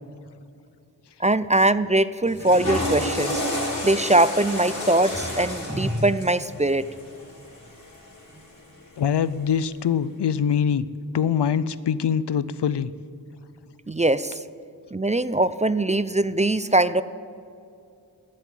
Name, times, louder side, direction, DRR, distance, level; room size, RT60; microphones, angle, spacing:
voice 1, 1.2-3.4 3.8-6.8 13.9-14.4 14.9-17.0, right 2 dB, 20° right, 15 dB, 0.4 m, -21 dB
Water / Toilet flush, 2.2-8.5, left 1 dB, 45° left, 3.8 m, -30 dB
voice 2, 9.0-10.9 11.1-12.9, left 8 dB, 85° left, 17 dB, 0.5 m, -23 dB
11.0 x 8.4 x 9.0 m, 2.5 s
wide cardioid pair, 45°, 40 cm